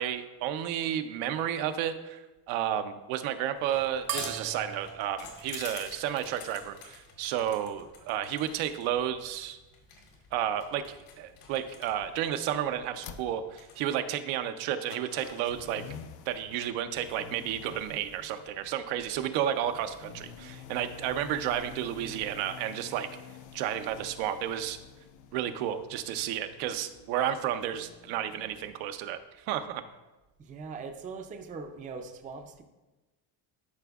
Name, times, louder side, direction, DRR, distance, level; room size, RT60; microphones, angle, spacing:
voice 1, 0.0-2.2 2.5-9.6 10.3-15.8 16.3-23.1 23.5-24.8 25.3-29.2 29.5-29.8, right 10 dB, 80° right, 9 dB, 0.7 m, -32 dB
sound 1, 3.6-13.8, left 5 dB, 80° left, 1.8 m, -49 dB
sound 2, 4.1-6.9, right 8 dB, 50° right, 0.8 m, -40 dB
sound 3, 10.9-28.8, left 7 dB, 40° left, 0.5 m, -50 dB
voice 2, 30.4-32.6, right 4 dB, 20° right, 5 dB, 0.4 m, -41 dB
11.5 x 5.0 x 2.3 m, 1.1 s
cardioid pair, 140°, 47 cm